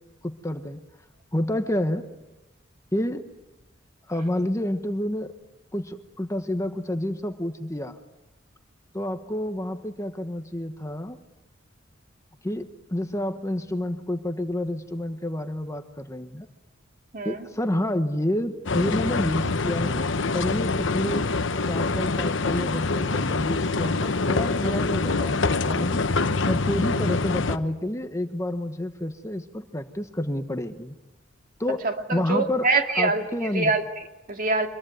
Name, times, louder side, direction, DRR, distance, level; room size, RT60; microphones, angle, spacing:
voice 1, 0.2-0.8 1.3-2.0 2.9-3.2 4.1-5.3 5.7-8.0 8.9-11.2 12.4-16.5 17.2-20.0 20.3-21.3 21.6-26.0 26.5-30.9 31.6-31.8 32.1-32.6 33.0-33.7, left 1 dB, 15° left, 8 dB, 1.2 m, -29 dB
voice 2, 17.1-17.5 31.8-34.7, right 3 dB, 45° right, 4 dB, 2.6 m, -25 dB
sound 1, 18.7-27.6, left 3 dB, 70° left, 1.0 m, -25 dB
25.5 x 22.5 x 9.2 m, 1.0 s
head